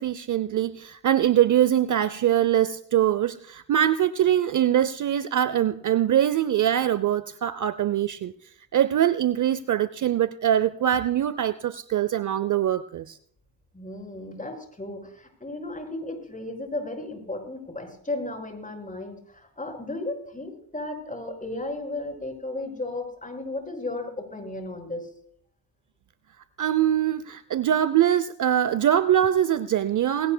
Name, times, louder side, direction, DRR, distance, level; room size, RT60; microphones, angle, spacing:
voice 1, 0.0-8.3 8.7-13.2 26.6-30.3, right 11 dB, 45° right, 16 dB, 0.6 m, -23 dB
voice 2, 13.7-25.1, left 2 dB, 15° left, 3 dB, 5.4 m, -34 dB
19.5 x 17.5 x 2.2 m, 0.64 s
supercardioid pair, 70°, 45 cm